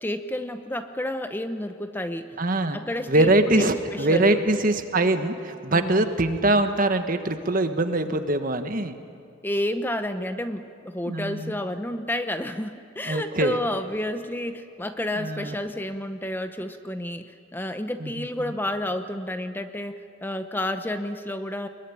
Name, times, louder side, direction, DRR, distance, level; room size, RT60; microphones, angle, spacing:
voice 1, 0.0-2.4 2.7-4.4 5.7-6.1 9.4-21.7, left 1 dB, 10° left, 8 dB, 0.8 m, -30 dB
voice 2, 2.4-2.8 3.1-9.0 11.1-11.6 13.0-13.6 15.1-15.5 18.0-18.5, right 2 dB, 45° right, 8 dB, 1.5 m, -23 dB
23.0 x 21.5 x 9.9 m, 2.3 s
head